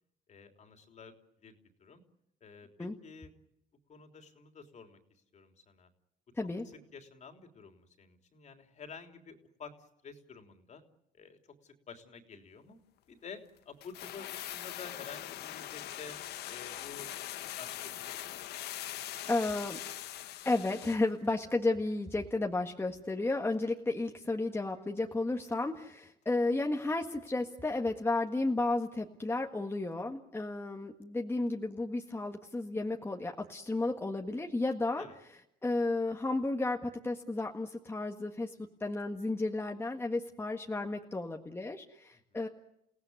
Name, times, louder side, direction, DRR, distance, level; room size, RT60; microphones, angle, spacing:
voice 1, 0.3-2.0 2.4-3.3 3.9-5.9 6.9-10.8 11.1-12.8 13.1-16.2 16.5-17.1 17.6-18.3 25.4-25.5 35.0-35.2 42.4-42.5, left 5 dB, 45° left, 5 dB, 3.4 m, -50 dB
sound 1, 13.8-21.1 21.4-21.5, left 13 dB, 75° left, 1.2 m, -42 dB
voice 2, 19.3-19.8 20.4-35.1 35.6-38.5 38.8-42.5, left 2 dB, 15° left, 2 dB, 1.7 m, -33 dB
29.5 x 17.5 x 9.5 m, 0.81 s
cardioid pair, 110°, 17 cm